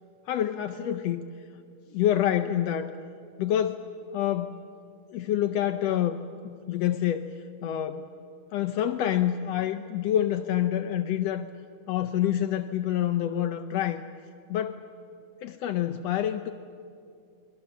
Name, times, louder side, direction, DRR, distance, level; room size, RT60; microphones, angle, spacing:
voice 1, 0.3-1.2 1.9-2.9 3.4-3.8 4.1-4.6 5.1-6.2 6.4-7.3 7.6-8.0 8.5-11.5 11.9-14.0 14.5-14.8 15.4-16.5, left 11 dB, 75° left, 7 dB, 1.5 m, -27 dB
28.0 x 22.0 x 7.1 m, 2.5 s
omnidirectional pair, 3.6 m